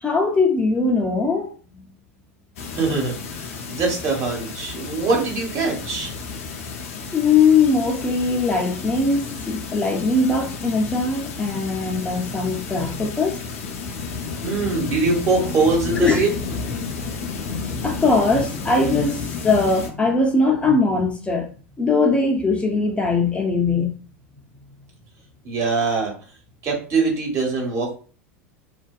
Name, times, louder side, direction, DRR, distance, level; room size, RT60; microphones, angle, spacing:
voice 1, 0.0-1.9 7.1-13.4 16.0-16.3 17.8-21.5 21.8-24.0, left 3 dB, 15° left, 0.5 m, -20 dB
sound 1, 2.6-19.9, left 5 dB, 75° left, 0.5 m, -32 dB
voice 2, 2.8-3.1 3.7-6.1 14.4-16.4 25.4-26.1 26.6-27.9, right 3 dB, 40° right, 1.1 m, -22 dB
2.5 x 2.2 x 2.3 m
hypercardioid pair, 90°, 8 cm